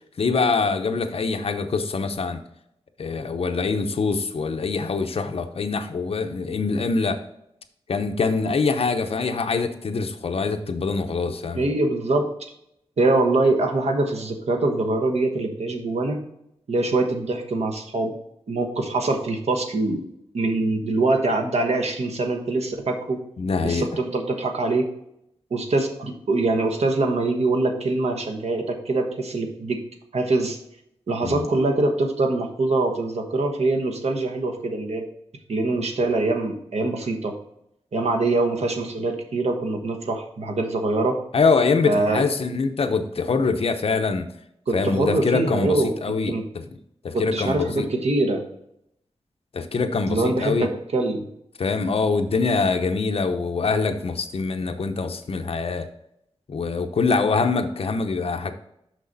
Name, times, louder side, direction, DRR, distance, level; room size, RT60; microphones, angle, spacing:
voice 1, 0.2-2.4 3.0-7.2 7.9-11.7 23.4-23.9 31.2-31.5 41.3-44.2 44.7-46.6 47.0-47.9 49.5-50.7 51.6-55.9 56.5-58.5, left 4 dB, 60° left, 7 dB, 0.7 m, -24 dB
voice 2, 11.5-12.3 13.0-16.2 16.7-18.1 18.5-20.0 20.3-23.2 23.6-24.9 25.5-29.8 30.1-30.6 31.1-35.0 35.5-37.3 37.9-41.2 41.9-42.2 44.7-45.9 46.3-46.4 47.1-48.4 50.1-51.3, right 2 dB, 75° right, 3 dB, 1.1 m, -23 dB
6.3 x 5.8 x 4.0 m, 0.78 s
wide cardioid pair, 130°, 11 cm